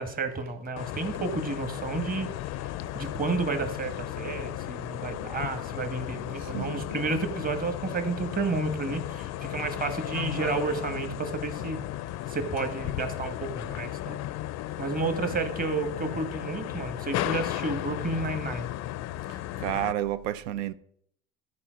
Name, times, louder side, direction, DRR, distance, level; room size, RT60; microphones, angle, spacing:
voice 1, 0.0-2.3 2.6-11.8 12.3-14.2 14.8-18.7, right 3 dB, 25° right, 1.3 m, -31 dB
sound 1, 0.8-19.9, left 14 dB, 50° left, 0.4 m, -35 dB
voice 2, 6.4-6.8 19.3-20.7, right 12 dB, 85° right, 0.6 m, -31 dB
13.0 x 4.4 x 5.1 m
supercardioid pair, 105°, 36 cm